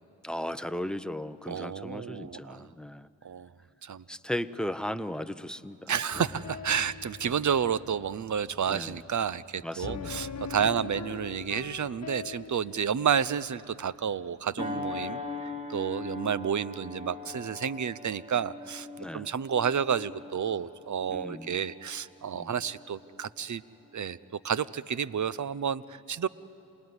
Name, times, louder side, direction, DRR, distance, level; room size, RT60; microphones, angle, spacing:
voice 1, 0.2-3.1 4.1-6.2 8.7-9.0 9.6-10.3 10.6-10.7 19.0-19.3 21.1-21.5 22.3-22.5, left 1 dB, ahead, 13 dB, 0.8 m, -36 dB
voice 2, 1.5-2.7 3.2-3.5 3.8-4.0 5.9-18.9 19.1-23.6 23.9-24.2 24.4-26.3, right 8 dB, 45° right, 18 dB, 0.8 m, -30 dB
sound 1, 6.1-16.9, left 6 dB, 40° left, 1.3 m, -44 dB
sound 2, 14.6-23.4 23.9-24.1, left 3 dB, 15° right, 3.0 m, -41 dB
27.0 x 19.5 x 9.8 m, 2.7 s
supercardioid pair, 50°, 43 cm